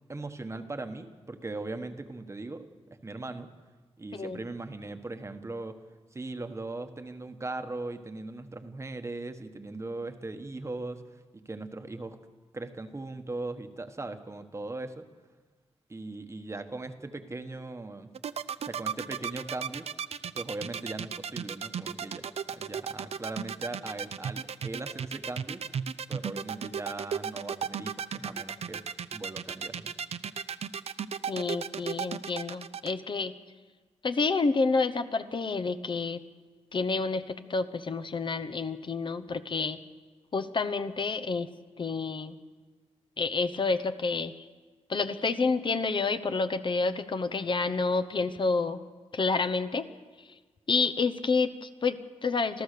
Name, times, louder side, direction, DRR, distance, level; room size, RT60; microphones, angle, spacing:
voice 1, 0.1-3.5 4.0-5.8 6.1-12.2 12.5-15.1 15.9-18.1 18.6-19.9 20.3-25.6 26.1-28.8 29.1-29.9, right 2 dB, 25° right, 8 dB, 1.2 m, -39 dB
sound 1, 18.1-32.9, right 7 dB, 65° right, 0.6 m, -34 dB
voice 2, 31.3-33.3 34.0-36.2 36.7-39.8 40.3-41.5 41.8-42.4 43.2-44.5 44.9-48.8 49.1-49.9 50.2-50.3 50.7-52.6, left 4 dB, 45° left, 10 dB, 0.9 m, -29 dB
26.5 x 14.5 x 6.7 m, 1.3 s
wide cardioid pair, 115°, 12 cm